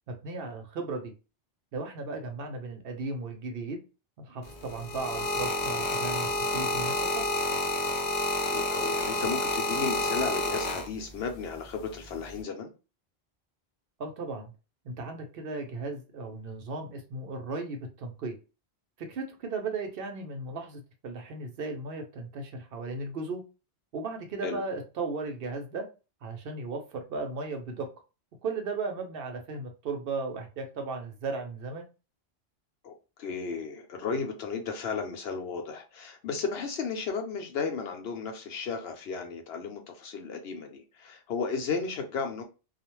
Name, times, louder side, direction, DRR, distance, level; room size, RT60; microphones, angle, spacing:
voice 1, 0.1-1.1 1.7-3.8 4.2-7.3 14.0-14.5 14.8-18.4 19.0-23.4 23.9-25.9 26.2-27.9 28.4-31.8, right 3 dB, 65° right, 0.8 m, -36 dB
sound 1, 4.4-11.3 12.1-12.4, left 2 dB, 50° left, 0.6 m, -29 dB
voice 2, 8.5-12.7 24.4-24.6 32.8-32.9 33.2-42.4, left 5 dB, 75° left, 0.9 m, -34 dB
2.4 x 2.1 x 2.9 m
omnidirectional pair, 1.1 m